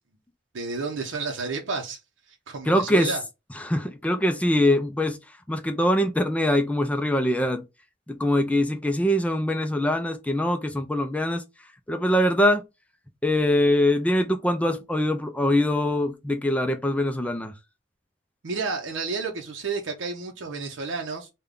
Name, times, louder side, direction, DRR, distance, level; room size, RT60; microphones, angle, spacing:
voice 1, 0.5-2.0 2.3-3.2 18.4-21.3, right 4 dB, 75° right, 0.6 m, -31 dB
voice 2, 2.6-3.1 3.5-7.6 8.1-11.4 11.9-12.6 13.2-17.5, left 1 dB, 5° left, 0.3 m, -23 dB
3.4 x 2.2 x 3.6 m
head